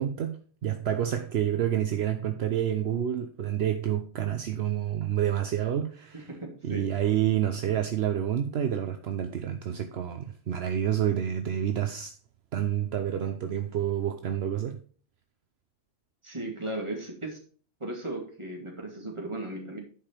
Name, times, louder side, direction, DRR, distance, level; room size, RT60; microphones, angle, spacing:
voice 1, 0.0-6.3 6.6-12.1 12.5-14.8, right 10 dB, 65° right, 0.9 m, -28 dB
voice 2, 6.1-6.8 16.2-17.4 17.8-19.8, right 2 dB, 25° right, 2.4 m, -36 dB
11.0 x 5.0 x 4.4 m
omnidirectional pair, 1.2 m